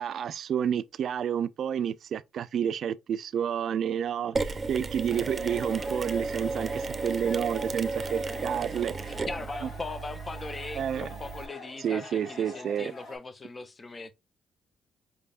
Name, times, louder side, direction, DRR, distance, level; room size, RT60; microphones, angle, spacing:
voice 1, 0.0-9.1 9.6-9.7 10.7-11.1 11.8-12.9, right 8 dB, 65° right, 0.4 m, -30 dB
Mechanisms, 4.3-11.5, right 4 dB, 30° right, 0.6 m, -34 dB
sound 1, 5.1-13.2, left 2 dB, 80° left, 2.2 m, -46 dB
voice 2, 9.1-14.1, left 3 dB, 30° left, 0.6 m, -39 dB
5.3 x 3.4 x 2.4 m
cardioid pair, 90°, 0 cm